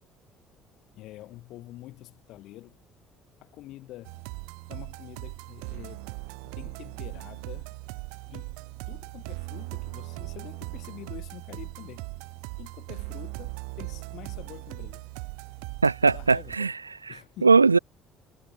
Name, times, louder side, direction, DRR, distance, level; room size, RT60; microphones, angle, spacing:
voice 1, 0.9-2.8 3.4-4.2 4.7-6.1 6.4-7.7 8.3-8.6 8.9-12.1 12.6-15.0 16.0-16.7 17.1-17.5, left 16 dB, 55° left, 5.7 m, -46 dB
sound 1, 4.0-16.6, right 40 dB or more, 65° right, 2.1 m, -39 dB
voice 2, 15.8-16.7 17.4-17.8, right 4 dB, 85° right, 0.3 m, -19 dB
figure-of-eight pair, 55°, 0 cm